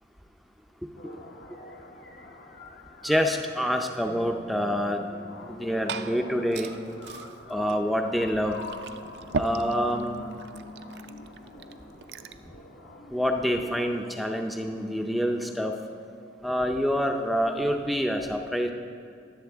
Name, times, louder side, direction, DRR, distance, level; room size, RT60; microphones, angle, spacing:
sound 1, 1.0-15.0, left 2 dB, 60° left, 1.0 m, -44 dB
voice 1, 3.0-5.0 5.5-6.7 7.5-8.6 9.4-10.1 13.1-15.8 16.4-18.7, equal, ahead, 3 dB, 0.5 m, -27 dB
Glass / Fill (with liquid), 5.4-12.5, right 4 dB, 65° right, 0.4 m, -39 dB
21.5 x 7.6 x 3.5 m, 2.3 s
head